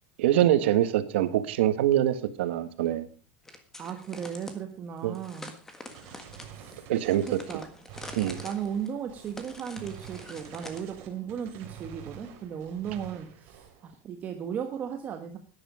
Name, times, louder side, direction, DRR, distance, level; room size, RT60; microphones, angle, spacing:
voice 1, 0.2-3.1 5.0-5.2 6.9-7.4 8.1-8.4, right 12 dB, 85° right, 11 dB, 1.6 m, -24 dB
sound 1, 3.4-4.6 5.1-10.9, left 1 dB, 5° left, 1.6 m, -45 dB
voice 2, 3.8-5.5 6.5-6.8 7.3-7.7 8.4-15.4, right 8 dB, 25° right, 5 dB, 1.2 m, -36 dB
Gunshot gunfire, 5.9-13.9, right 9 dB, 45° right, 3.2 m, -48 dB
13.0 x 10.5 x 5.0 m, 0.36 s
supercardioid pair, 160°, 6 cm